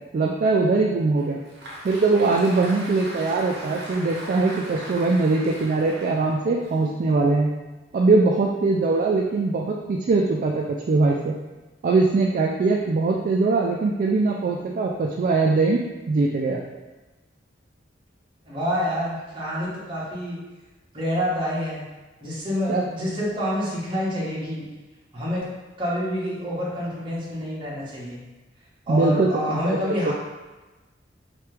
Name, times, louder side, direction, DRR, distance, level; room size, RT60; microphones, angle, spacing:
voice 1, 0.1-1.4 1.8-7.5 7.9-11.3 11.8-15.8 16.1-16.6 22.7-22.8 28.9-29.8 30.1-30.2, right 3 dB, 45° right, 0 dB, 0.3 m, -21 dB
Applause, 1.2-7.5, right 1 dB, 60° right, 0.8 m, -39 dB
voice 2, 18.5-20.4 20.9-21.8 22.2-24.6 25.1-25.5 25.8-28.2 28.9-30.1, equal, 25° right, -8 dB, 1.2 m, -27 dB
3.3 x 3.2 x 3.3 m, 1.2 s
head